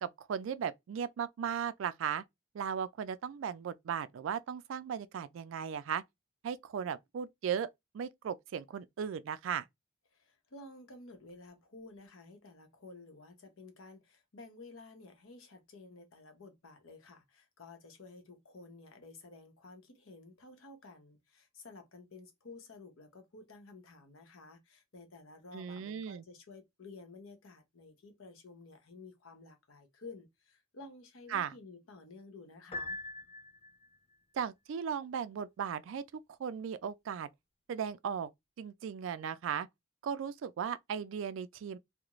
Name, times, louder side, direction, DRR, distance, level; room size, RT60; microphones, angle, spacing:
voice 1, 0.0-2.2 2.5-6.0 6.4-7.7 7.9-9.7 25.5-26.2 31.3-31.5 34.3-37.3 37.7-38.3 38.6-39.7 40.0-41.8, right 7 dB, 70° right, 0.3 m, -37 dB
voice 2, 10.1-33.0, left 3 dB, 80° left, 0.8 m, -53 dB
Piano, 32.7-34.0, left 2 dB, 30° left, 0.4 m, -42 dB
2.4 x 2.1 x 2.9 m
head